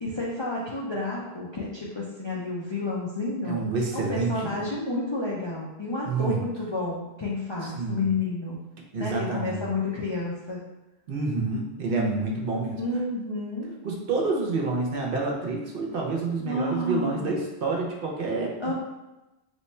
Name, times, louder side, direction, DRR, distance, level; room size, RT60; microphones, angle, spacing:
voice 1, 0.0-3.6 3.9-8.6 8.9-10.6 12.8-13.7 16.4-17.3 18.6-18.7, left 2 dB, 45° left, -5 dB, 0.3 m, -30 dB
voice 2, 3.4-4.7 6.0-6.4 7.6-8.1 8.9-9.7 11.1-12.8 13.8-18.7, right 3 dB, 60° right, -1 dB, 0.8 m, -28 dB
3.0 x 2.2 x 4.1 m, 1.0 s
omnidirectional pair, 1.1 m